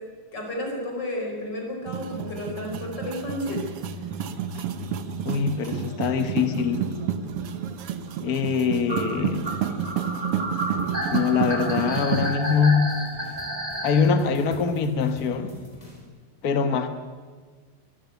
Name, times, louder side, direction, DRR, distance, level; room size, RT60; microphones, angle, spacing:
voice 1, 0.3-3.6, left 1 dB, 30° left, 1 dB, 5.1 m, -32 dB
sound 1, 1.9-12.4, right 8 dB, 65° right, 1.4 m, -30 dB
voice 2, 5.2-6.9 8.2-9.5 11.1-12.9 13.8-15.5 16.4-16.9, left 6 dB, 90° left, 9 dB, 0.8 m, -23 dB
sound 2, 5.3-5.5 6.3-6.4 6.6-6.7 7.3-7.5 8.1-8.2 8.9-14.0, right 1 dB, 10° right, 3.6 m, -31 dB
sound 3, 10.8-16.0, left 1 dB, 10° left, 4.2 m, -47 dB
22.5 x 13.5 x 9.4 m, 1.5 s
omnidirectional pair, 3.9 m